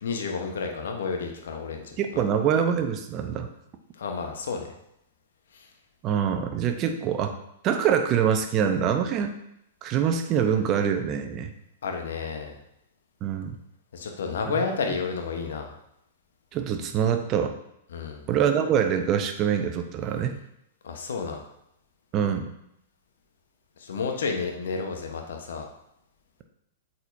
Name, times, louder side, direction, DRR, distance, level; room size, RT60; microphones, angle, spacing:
voice 1, 0.0-2.2 3.9-4.7 5.5-5.7 11.8-12.6 13.9-15.7 17.9-18.2 20.8-21.4 23.8-25.7, left 5 dB, 65° left, 3 dB, 1.0 m, -31 dB
voice 2, 2.0-3.5 6.0-7.3 7.6-9.3 9.8-11.5 13.2-13.6 16.5-17.5 18.3-20.4 22.1-22.5, right 8 dB, 35° right, 7 dB, 0.7 m, -24 dB
8.1 x 4.3 x 2.7 m, 0.80 s
figure-of-eight pair, 105°, 0 cm